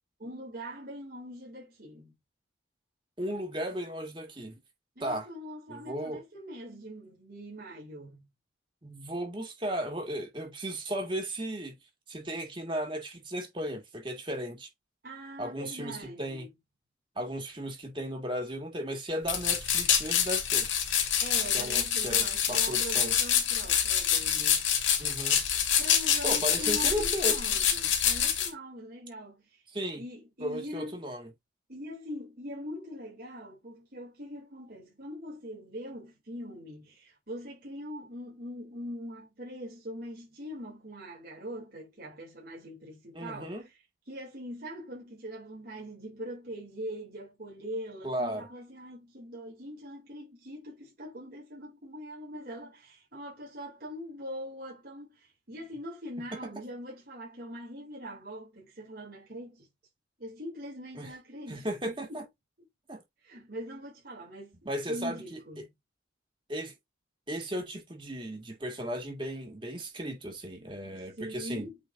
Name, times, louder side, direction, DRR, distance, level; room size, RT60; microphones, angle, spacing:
voice 1, 0.2-2.1 5.0-8.2 15.0-16.5 21.2-24.6 25.6-29.6 29.9-31.0 31.7-43.7 44.1-59.7 60.2-62.2 63.2-65.7 70.9-71.8, equal, 50° right, 3.8 m, -42 dB
voice 2, 3.2-4.6 5.0-5.3 5.7-6.2 8.8-11.7 12.1-14.7 15.4-16.5 17.2-20.7 21.5-23.1 25.0-25.4 26.2-27.4 29.7-30.0 30.4-31.3 43.1-43.7 48.0-48.5 60.9-61.1 61.5-62.2 62.9-63.0 64.6-65.6 66.5-66.7 67.3-71.7, equal, 25° right, 2.4 m, -35 dB
sound 1, 19.3-28.5, left 8 dB, 85° left, 2.2 m, -26 dB
8.4 x 4.2 x 2.7 m
head